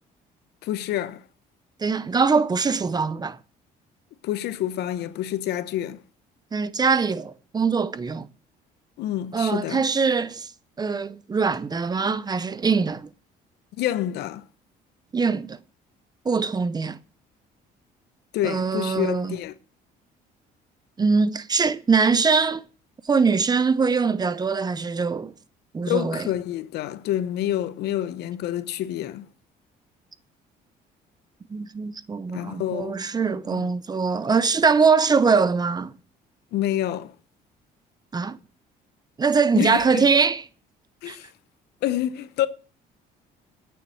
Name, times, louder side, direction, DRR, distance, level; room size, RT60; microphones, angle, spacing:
voice 1, 0.6-1.2 4.2-6.0 9.0-9.9 13.8-14.4 18.3-19.5 25.9-29.2 32.3-33.0 33.5-33.7 36.5-37.1 39.5-40.1 41.0-41.3 41.8-42.5, left 12 dB, 75° left, 0.9 m, -27 dB
voice 2, 1.8-3.4 6.5-8.3 9.3-10.5 10.8-13.1 15.1-15.6 16.3-17.0 18.4-19.4 21.0-22.6 23.1-25.3 25.7-26.3 31.5-35.9 38.1-38.4 39.2-40.4 41.1-41.2, right 5 dB, 25° right, 0.6 m, -22 dB
9.0 x 7.1 x 9.0 m
cardioid pair, 110°, 17 cm